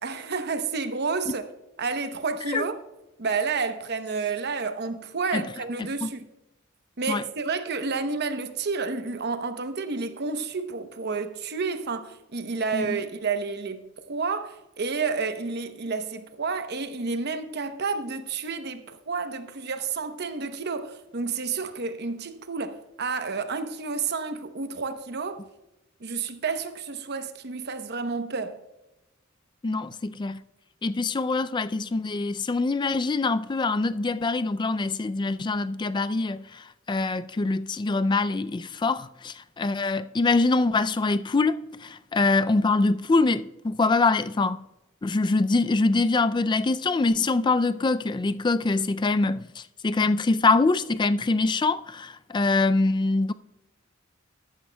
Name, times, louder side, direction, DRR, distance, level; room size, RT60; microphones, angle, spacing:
voice 1, 0.0-1.4 1.8-2.7 3.2-6.2 7.0-25.4 26.0-28.6, right 4 dB, 55° right, 0.8 m, -30 dB
voice 2, 5.8-6.1 7.1-7.2 12.7-13.0 29.6-30.4 30.8-44.7 45.0-53.3, left 3 dB, 20° left, 0.3 m, -24 dB
13.0 x 12.5 x 2.3 m
head